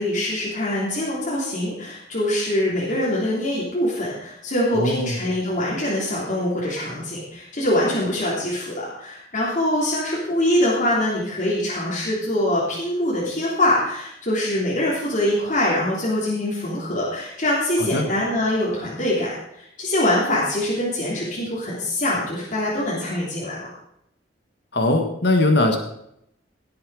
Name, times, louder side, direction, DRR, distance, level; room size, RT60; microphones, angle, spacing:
voice 1, 0.0-23.7, left 1 dB, 45° left, -6 dB, 3.4 m, -24 dB
voice 2, 4.7-5.2 17.8-18.1 24.7-25.8, left 2 dB, 65° left, 4 dB, 1.7 m, -20 dB
17.5 x 7.8 x 4.9 m, 0.77 s
head